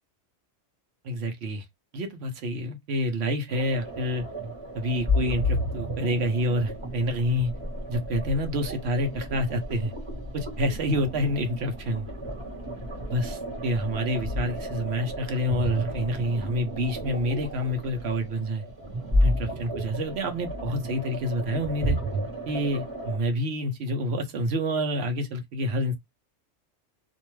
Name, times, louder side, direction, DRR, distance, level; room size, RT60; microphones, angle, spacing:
voice 1, 1.0-1.6 1.9-4.2 4.7-7.5 7.9-9.9 10.3-12.1 13.1-18.6 19.2-22.0 22.5-26.0, equal, 65° right, 0.9 m, -28 dB
sound 1, 3.5-23.2, equal, 25° right, 1.1 m, -32 dB
2.5 x 2.2 x 3.0 m
omnidirectional pair, 1.2 m